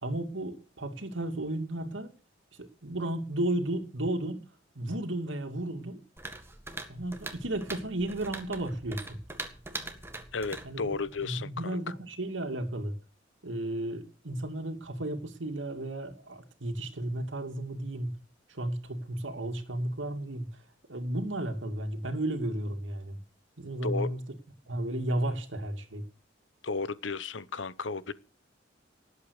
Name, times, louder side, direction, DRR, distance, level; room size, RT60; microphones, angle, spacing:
voice 1, 0.0-2.1 2.6-4.5 4.7-6.0 6.9-9.2 10.6-10.9 11.2-13.0 13.4-18.2 18.5-20.5 20.9-23.2 23.6-24.2 24.7-26.0, right 1 dB, 80° right, 2.5 m, -33 dB
sound 1, 6.2-11.4, right 2 dB, 15° right, 1.8 m, -42 dB
voice 2, 10.3-11.7 23.8-24.1 26.6-28.1, left 4 dB, 75° left, 0.9 m, -33 dB
18.5 x 8.3 x 6.6 m
head